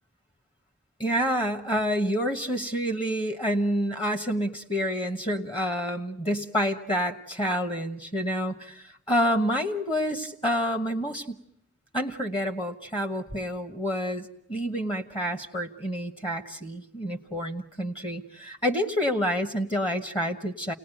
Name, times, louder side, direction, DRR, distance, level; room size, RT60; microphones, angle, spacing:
voice 1, 1.0-11.4 11.9-20.7, equal, 25° left, 8 dB, 1.3 m, -28 dB
30.0 x 19.0 x 9.1 m, 0.76 s
head